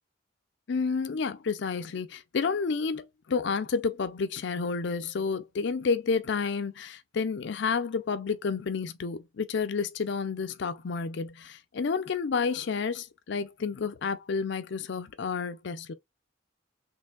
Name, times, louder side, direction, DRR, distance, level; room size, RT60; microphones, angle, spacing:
voice 1, 0.7-15.9, left 5 dB, 60° left, 0.4 m, -30 dB
4.4 x 3.3 x 2.3 m
head